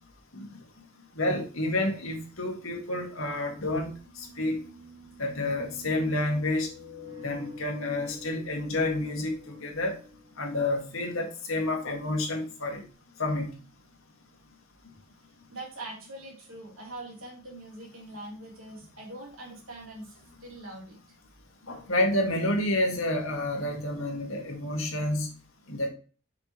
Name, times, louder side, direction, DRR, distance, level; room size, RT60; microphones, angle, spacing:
voice 1, 1.2-3.9 4.2-4.6 5.2-6.7 7.2-10.0 10.4-12.8 13.2-13.6 21.7-25.3 25.7-25.9, left 1 dB, 80° left, 2 dB, 1.7 m, -29 dB
sound 1, 3.8-10.6, left 1 dB, 65° right, 1.8 m, -47 dB
voice 2, 15.5-21.2, right 1 dB, 85° right, -2 dB, 3.0 m, -43 dB
6.8 x 5.6 x 3.0 m, 0.37 s
head